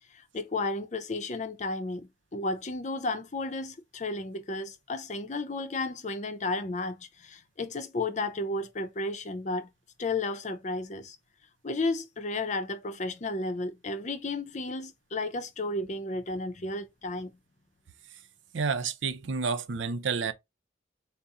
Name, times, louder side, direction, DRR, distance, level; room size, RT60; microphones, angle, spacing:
voice 1, 0.1-9.7 10.0-11.2 11.6-17.3, left 2 dB, 40° left, 0.5 m, -33 dB
voice 2, 18.5-20.3, right 5 dB, 80° right, 0.5 m, -30 dB
4.1 x 2.0 x 3.6 m
head